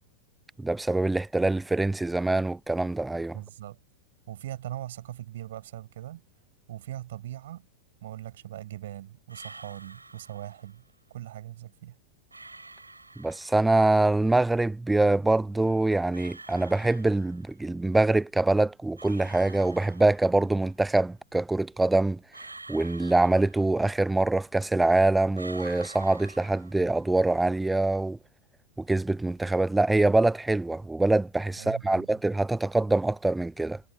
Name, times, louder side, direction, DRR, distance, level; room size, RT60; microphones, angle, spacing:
voice 1, 0.6-3.4 13.2-22.2 22.7-28.2 28.8-33.8, right 2 dB, 5° right, 0.8 m, -24 dB
voice 2, 3.3-3.8 4.3-6.2 6.7-7.7 8.0-10.8 11.1-12.0 31.6-32.2, right 13 dB, 60° right, 5.1 m, -40 dB
sound 1, 9.3-10.8 12.3-13.8 16.1-17.7 19.0-20.5 22.3-24.1 25.3-27.2, right 3 dB, 80° right, 7.0 m, -47 dB
figure-of-eight pair, 90°, 0 cm